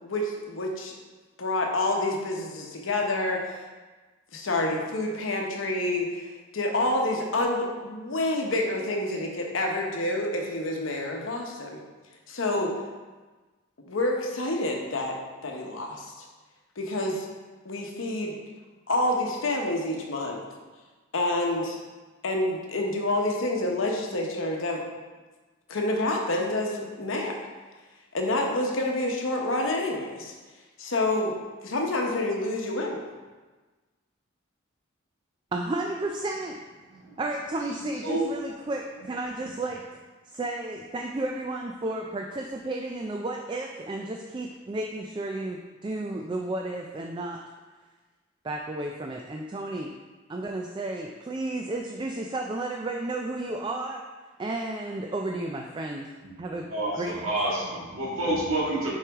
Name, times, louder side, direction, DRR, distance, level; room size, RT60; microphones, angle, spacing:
voice 1, 0.0-0.9 1.4-3.6 4.3-11.8 12.3-12.7 13.9-15.2 15.4-16.0 16.8-17.3 17.6-18.4 18.9-20.4 21.1-21.8 22.2-24.8 25.7-27.4 28.1-30.3 30.8-31.4 31.6-33.0, left 2 dB, 75° left, 1 dB, 0.9 m, -28 dB
voice 2, 35.5-36.6 37.2-39.8 40.3-47.4 48.4-49.9 50.3-54.0 54.4-56.1 56.4-56.7 56.9-57.1 57.4-57.5, right 2 dB, 25° right, 1 dB, 0.3 m, -32 dB
voice 3, 56.7-58.9, right 1 dB, 85° right, -5 dB, 1.9 m, -28 dB
5.9 x 4.8 x 3.5 m, 1.3 s
head